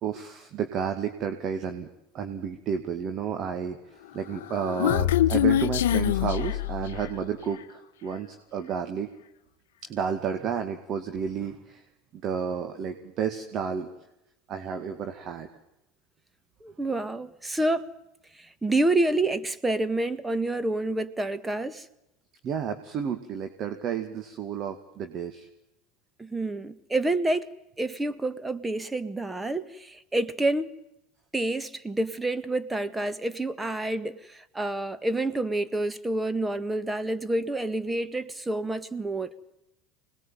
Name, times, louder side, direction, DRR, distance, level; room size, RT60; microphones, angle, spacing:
voice 1, 0.0-1.9 2.1-9.1 9.8-11.8 12.1-13.9 14.5-15.5 22.4-25.5, right 7 dB, 45° right, 2.2 m, -31 dB
Human voice, 4.2-7.2, left 12 dB, 75° left, 0.8 m, -25 dB
voice 2, 16.6-17.9 18.4-21.9 26.2-30.7 31.3-39.3, right 2 dB, 10° right, 1.7 m, -28 dB
25.5 x 20.0 x 9.2 m
hypercardioid pair, 85°, 0 cm